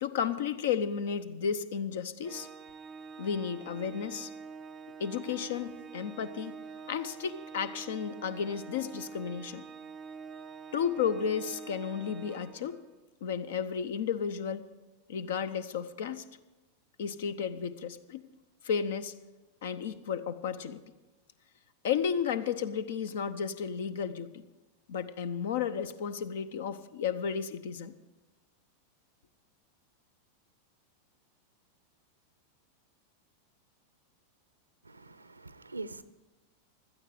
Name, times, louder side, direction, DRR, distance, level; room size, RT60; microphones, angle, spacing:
voice 1, 0.0-2.5 3.2-4.3 5.0-6.6 6.9-9.6 10.7-12.8 13.2-14.6 15.1-16.2 17.0-18.2 18.6-19.1 19.6-20.8 21.8-24.4 24.9-27.9, left 7 dB, 60° left, 14 dB, 0.8 m, -33 dB
Organ, 2.2-13.0, right 5 dB, 20° right, 0.5 m, -46 dB
voice 2, 34.9-36.0, right 3 dB, 80° right, 16 dB, 0.6 m, -43 dB
16.5 x 12.5 x 4.9 m, 1.1 s
figure-of-eight pair, 90°, 0 cm